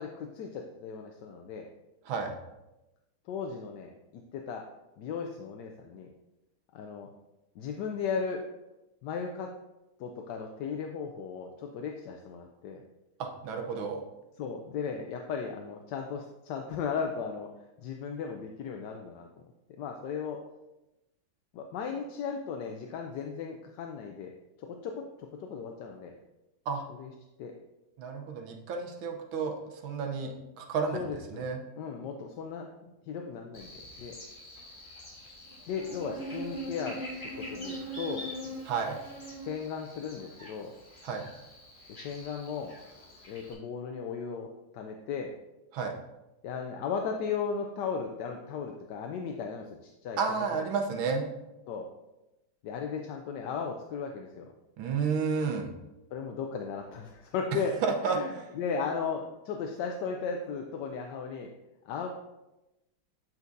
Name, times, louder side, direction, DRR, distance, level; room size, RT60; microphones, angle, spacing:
voice 1, 0.0-1.7 3.3-4.6 5.0-6.1 6.7-7.1 7.6-8.4 9.0-9.5 10.0-12.8 14.4-17.5 17.8-19.3 19.8-20.4 21.5-24.3 24.6-24.9 25.5-26.1 27.0-27.1 27.4-27.5 30.9-31.5 31.8-32.7 33.1-34.1 35.7-37.0 37.4-38.3 39.4-40.7 41.9-42.7 43.3-44.5 44.7-45.3 46.4-50.8 51.7-51.9 52.6-54.5 56.1-57.7 58.0-61.5 61.9-62.1, left 6 dB, 70° left, 2 dB, 1.1 m, -36 dB
voice 2, 13.2-14.0 26.7-26.8 28.0-29.5 29.8-31.0 31.3-31.6 38.7-39.0 41.0-41.3 45.7-45.9 50.2-51.2 54.8-55.7 57.8-58.2, right 5 dB, 90° right, 3 dB, 1.7 m, -31 dB
Buzz, 33.5-43.5, equal, 25° left, 2.0 m, -42 dB
8.2 x 5.9 x 2.6 m, 0.96 s
omnidirectional pair, 2.1 m